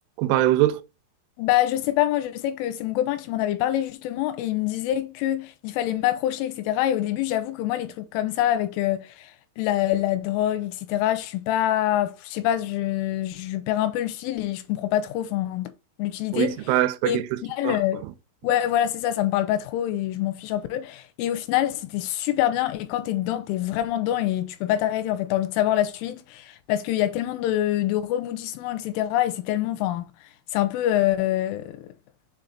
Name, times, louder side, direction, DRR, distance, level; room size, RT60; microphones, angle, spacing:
voice 1, 0.2-0.8 16.3-17.8 18.0-18.1, right 14 dB, 85° right, 3.1 m, -23 dB
voice 2, 1.4-9.3 9.6-15.7 16.0-16.5 17.1-18.0 18.4-30.1 30.5-31.9, left 13 dB, 90° left, 3.1 m, -25 dB
7.4 x 2.6 x 5.6 m
omnidirectional pair, 5.6 m